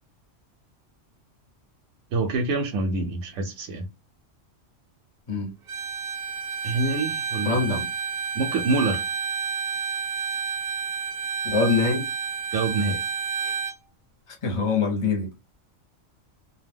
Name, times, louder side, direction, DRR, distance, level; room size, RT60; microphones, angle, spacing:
voice 1, 2.1-3.9 6.6-7.6 8.3-9.0 12.5-13.0, right 3 dB, 85° right, 1.0 m, -26 dB
Bowed string instrument, 5.7-13.8, right 7 dB, 60° right, 0.7 m, -30 dB
voice 2, 7.4-7.9 11.4-12.1 14.4-15.3, left 4 dB, 30° left, 0.8 m, -23 dB
2.4 x 2.2 x 3.4 m
omnidirectional pair, 1.3 m